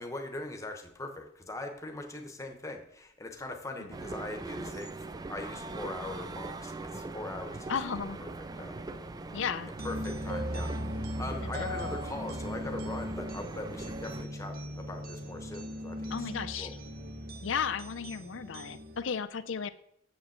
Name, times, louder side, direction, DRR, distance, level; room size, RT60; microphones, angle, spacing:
voice 1, 0.0-4.9 5.3-7.7 8.2-8.8 9.8-16.7, left 2 dB, 15° left, 4 dB, 1.0 m, -41 dB
sound 1, 3.9-14.2, right 3 dB, 20° right, 0.3 m, -41 dB
voice 2, 7.7-8.2 9.3-9.7 11.6-11.7 16.1-16.8 17.4-19.7, left 6 dB, 70° left, 13 dB, 0.5 m, -34 dB
sound 2, 9.8-19.0, equal, 45° right, 0.9 m, -38 dB
7.2 x 5.1 x 7.2 m, 0.72 s
head